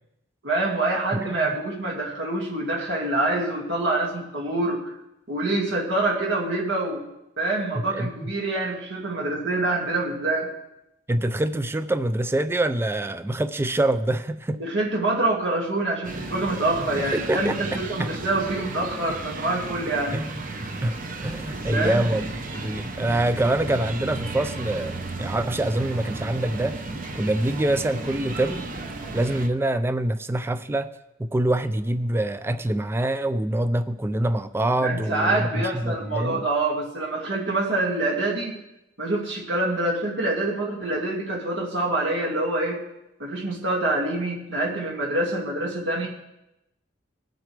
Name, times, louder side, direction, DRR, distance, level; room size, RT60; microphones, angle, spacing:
voice 1, 0.4-4.8 5.3-7.0 7.4-10.5 14.6-20.2 21.7-22.0 34.8-38.6 39.0-42.8 43.2-46.1, right 2 dB, 75° right, -3 dB, 2.1 m, -26 dB
voice 2, 7.8-8.3 11.1-14.6 17.0-18.2 20.1-20.3 20.8-21.0 21.2-26.8 27.1-28.7 29.1-30.9 31.2-36.5, right 1 dB, 10° right, 11 dB, 0.4 m, -25 dB
sound 1, 16.0-29.5, right 2 dB, 45° right, 0.9 m, -34 dB
20.0 x 7.8 x 3.3 m, 0.90 s
head